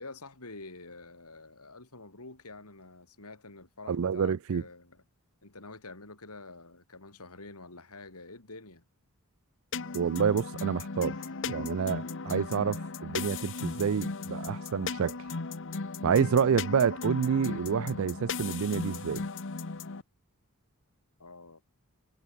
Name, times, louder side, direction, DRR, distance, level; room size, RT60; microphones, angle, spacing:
voice 1, 0.0-5.0 5.4-8.8 21.2-21.6, left 3 dB, 90° left, 4.6 m, -47 dB
voice 2, 3.9-4.6 9.9-11.2 11.5-15.2 16.0-19.3, right 6 dB, 65° right, 0.4 m, -28 dB
sound 1, 9.7-20.0, left 4 dB, 60° left, 1.0 m, -36 dB
head